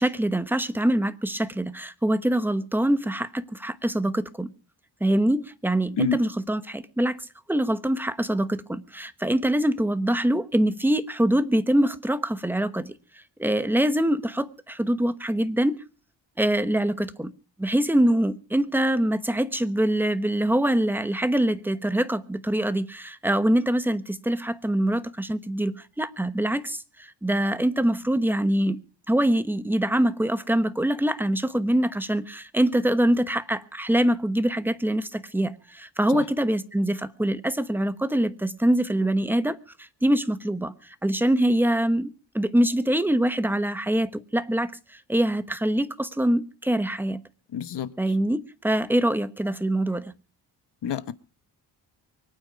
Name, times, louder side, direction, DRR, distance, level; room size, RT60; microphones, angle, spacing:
voice 1, 0.0-4.5 5.0-7.2 7.5-12.9 13.4-15.8 16.4-17.3 17.6-28.8 29.1-42.1 42.3-47.2 48.0-50.1, right 1 dB, 5° right, 1.0 m, -24 dB
voice 2, 47.5-47.9 50.8-51.1, left 9 dB, 65° left, 1.2 m, -27 dB
24.0 x 9.0 x 5.1 m
cardioid pair, 120°, 45 cm